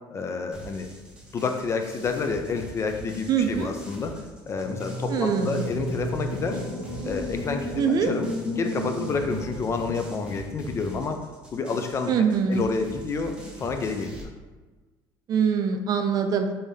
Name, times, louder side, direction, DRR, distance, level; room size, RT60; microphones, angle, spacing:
voice 1, 0.1-0.9 1.3-6.6 7.0-11.2 11.5-14.3, left 4 dB, 30° left, 6 dB, 0.3 m, -29 dB
sound 1, 0.5-14.2, right 1 dB, 10° right, 0.8 m, -43 dB
voice 2, 3.3-3.7 5.1-5.6 7.8-8.1 12.1-12.6 15.3-16.5, right 6 dB, 45° right, 6 dB, 0.3 m, -23 dB
sound 2, 4.5-10.7, equal, 90° left, 0.8 m, -33 dB
3.4 x 2.7 x 3.3 m, 1.3 s
cardioid pair, 115°, 9 cm